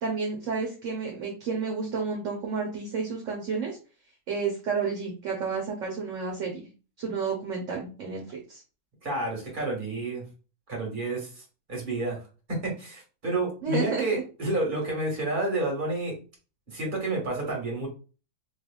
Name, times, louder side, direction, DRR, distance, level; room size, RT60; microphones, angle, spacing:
voice 1, 0.0-3.8 4.3-6.7 7.0-8.6 13.6-14.1, right 5 dB, 60° right, 0 dB, 1.1 m, -31 dB
voice 2, 9.0-10.3 10.7-11.4 11.7-12.2 12.5-16.1 16.7-17.9, right 2 dB, 35° right, -2 dB, 1.7 m, -30 dB
4.1 x 3.2 x 2.3 m, 0.35 s
omnidirectional pair, 1.6 m